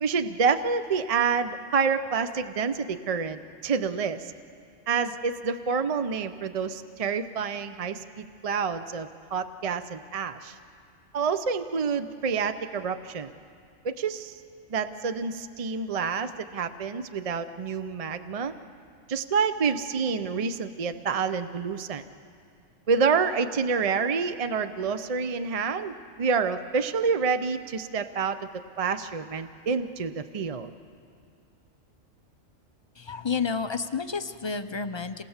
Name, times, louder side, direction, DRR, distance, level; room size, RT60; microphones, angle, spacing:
voice 1, 0.0-4.3 4.9-10.6 11.1-13.3 13.8-14.4 14.7-18.5 19.1-22.0 22.9-28.4 28.8-30.7, right 5 dB, 45° right, 10 dB, 0.5 m, -28 dB
voice 2, 32.9-35.2, left 5 dB, 35° left, 9 dB, 0.4 m, -30 dB
27.0 x 19.0 x 7.2 m, 2.3 s
omnidirectional pair, 1.3 m